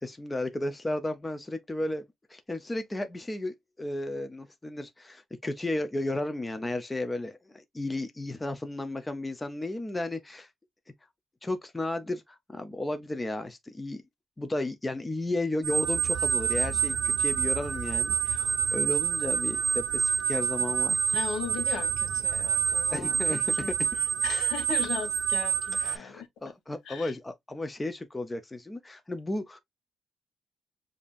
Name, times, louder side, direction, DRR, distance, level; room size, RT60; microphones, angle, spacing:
voice 1, 0.0-2.0 2.3-10.5 11.4-14.0 14.4-21.0 22.9-23.7 25.8-29.6, left 2 dB, 10° left, 0.4 m, -34 dB
sound 1, 15.6-26.0, right 7 dB, 70° right, 0.6 m, -27 dB
voice 2, 21.1-23.7 24.2-26.3 26.9-27.1, left 7 dB, 70° left, 1.1 m, -37 dB
6.9 x 2.5 x 2.4 m
cardioid pair, 180°, 0 cm